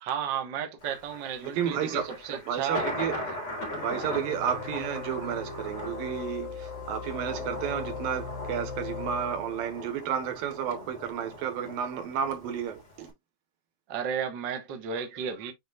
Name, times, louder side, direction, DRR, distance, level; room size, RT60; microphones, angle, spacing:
voice 1, 0.0-2.9 3.9-4.2 13.9-15.5, right 7 dB, 60° right, 1.2 m, -33 dB
Thunder, 0.8-13.1, left 1 dB, 30° left, 4.1 m, -39 dB
voice 2, 1.4-2.1 2.5-3.4 3.8-13.1, right 8 dB, 80° right, 3.1 m, -32 dB
sound 1, 3.7-9.9, left 5 dB, 70° left, 3.1 m, -39 dB
8.9 x 4.6 x 2.4 m
omnidirectional pair, 4.1 m